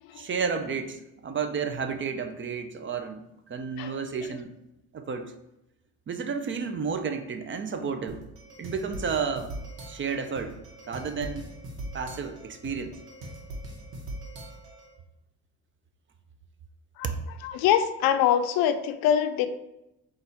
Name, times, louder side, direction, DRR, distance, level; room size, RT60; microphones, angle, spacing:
voice 1, 0.1-4.5 4.9-5.3 6.1-8.2 8.6-9.5 9.9-10.6 10.9-11.5 11.9-12.9 17.0-17.2, right 5 dB, 35° right, 7 dB, 0.5 m, -31 dB
sound 1, 8.1-14.9, right 1 dB, 75° right, 1.1 m, -41 dB
voice 2, 17.4-19.5, left 9 dB, 70° left, 9 dB, 0.5 m, -23 dB
4.0 x 2.5 x 4.4 m, 0.88 s
supercardioid pair, 70°, 36 cm